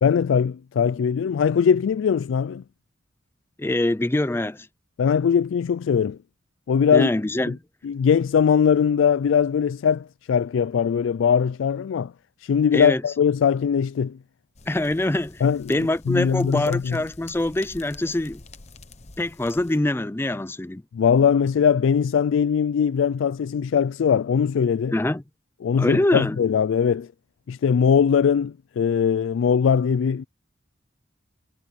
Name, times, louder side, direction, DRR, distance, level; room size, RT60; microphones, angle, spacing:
voice 1, 0.0-2.6 5.0-6.2 6.7-7.1 7.5-7.6 7.8-12.1 12.4-14.2 15.4-17.0 20.9-24.9 25.6-27.1 27.5-30.2, left 7 dB, 85° left, 0.3 m, -21 dB
voice 2, 3.6-4.7 6.9-7.6 12.7-13.0 14.7-15.4 15.7-18.4 19.2-20.8 24.9-25.2 25.8-26.4, left 1 dB, 10° left, 0.4 m, -24 dB
sound 1, 14.5-19.8, left 3 dB, 35° left, 1.0 m, -47 dB
head